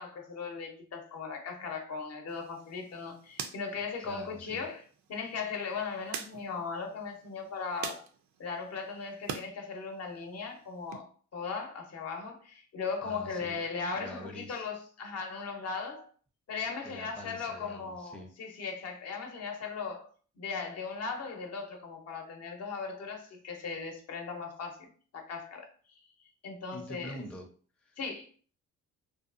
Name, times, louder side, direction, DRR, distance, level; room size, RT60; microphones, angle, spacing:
voice 1, 0.0-4.8 5.1-8.0 8.4-16.1 16.5-20.1 20.4-25.7 26.4-27.1 28.0-28.2, left 5 dB, 55° left, 0.7 m, -38 dB
sound 1, 2.3-9.5 9.9-11.0, right 7 dB, 70° right, 0.4 m, -45 dB
voice 2, 4.0-4.6 13.0-13.6 13.9-14.7 16.8-18.3 26.7-27.5 27.8-28.0, left 1 dB, 5° left, 0.5 m, -45 dB
2.7 x 2.3 x 2.4 m
cardioid pair, 90°, 30 cm